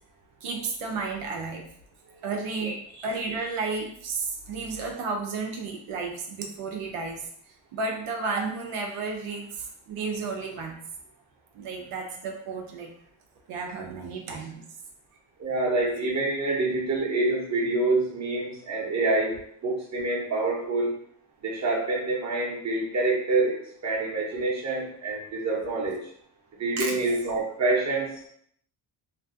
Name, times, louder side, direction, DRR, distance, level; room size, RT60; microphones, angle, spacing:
voice 1, 0.4-1.6 2.2-7.3 7.7-10.8 11.5-12.9 13.5-14.6 26.8-27.2, right 4 dB, 90° right, 1 dB, 0.6 m, -32 dB
voice 2, 15.4-20.9 21.4-23.6 23.8-26.0 26.6-28.1, right 2 dB, 35° right, -3 dB, 0.8 m, -26 dB
2.6 x 2.2 x 2.6 m, 0.65 s
cardioid pair, 105°, 49 cm